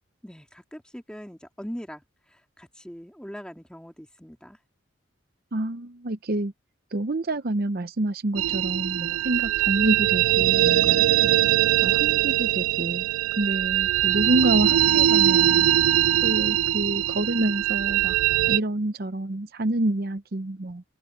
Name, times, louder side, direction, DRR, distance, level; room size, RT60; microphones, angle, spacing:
voice 1, 0.2-4.6 11.2-11.6, equal, 5° left, 2.2 m, -41 dB
voice 2, 5.5-6.5 6.9-11.1 11.8-13.0 13.4-15.7 16.2-18.2 18.5-20.8, right 2 dB, 45° right, 0.7 m, -27 dB
sound 1, 8.4-18.6, right 12 dB, 85° right, 0.3 m, -21 dB
head